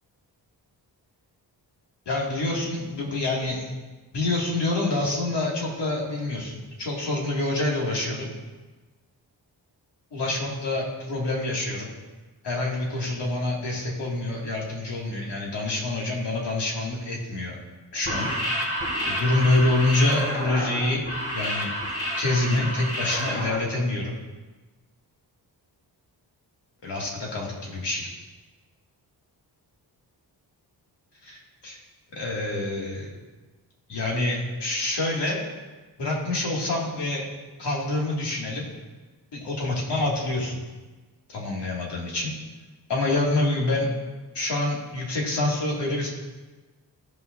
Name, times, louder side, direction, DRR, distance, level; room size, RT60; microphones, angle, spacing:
voice 1, 2.1-3.7 4.1-8.3 10.1-11.9 12.4-17.6 17.9-18.3 19.0-21.1 21.3-21.7 22.2-24.2 26.8-28.1 31.2-31.8 32.2-33.1 33.9-35.5 36.0-37.3 37.6-38.7 39.3-40.6 41.3-42.3 42.9-44.0 44.3-46.1, left 2 dB, 80° left, -3 dB, 2.2 m, -26 dB
sound 1, 17.9-23.6, equal, 35° left, 2.1 m, -29 dB
14.5 x 5.5 x 2.6 m, 1.2 s
wide cardioid pair, 110°, 41 cm